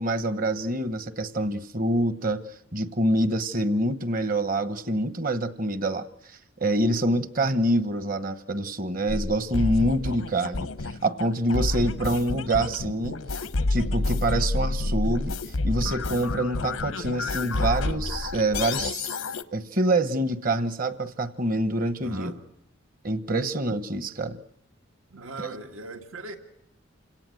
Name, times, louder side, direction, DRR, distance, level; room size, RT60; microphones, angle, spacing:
voice 1, 0.0-2.4 2.7-13.4 13.7-15.4 15.6-19.2 19.5-22.3 23.0-24.4 25.4-25.5, right 1 dB, 40° right, 1.1 m, -26 dB
sound 1, 9.1-19.4, left 2 dB, 90° left, 0.9 m, -29 dB
voice 2, 22.0-22.4 25.1-26.4, right 2 dB, 85° right, 1.7 m, -40 dB
28.5 x 18.0 x 7.8 m
head